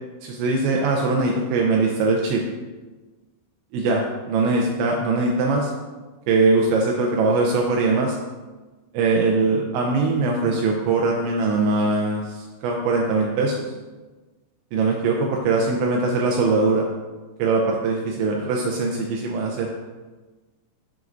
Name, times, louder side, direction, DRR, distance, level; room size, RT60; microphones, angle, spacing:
voice 1, 0.2-2.4 3.7-4.0 4.3-5.7 6.3-8.2 8.9-13.7 14.7-16.9 17.4-19.7, right 3 dB, 80° right, 0 dB, 2.9 m, -21 dB
11.0 x 6.3 x 2.6 m, 1.3 s
omnidirectional pair, 5.4 m